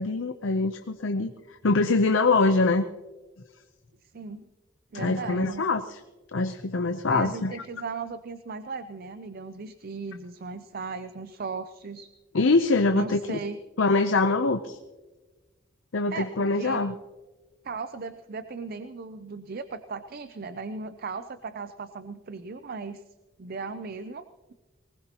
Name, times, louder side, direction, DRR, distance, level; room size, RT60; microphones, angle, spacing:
voice 1, 0.0-2.8 4.9-6.0 6.3-7.6 12.3-13.4 13.8-14.8 15.9-16.9, left 3 dB, 70° left, 8 dB, 0.7 m, -24 dB
voice 2, 4.0-4.4 4.9-5.7 7.1-12.1 12.9-13.6 16.1-16.8 17.6-23.0 23.4-24.2, right 4 dB, 50° right, 11 dB, 0.5 m, -37 dB
20.0 x 19.5 x 2.9 m, 1.2 s
head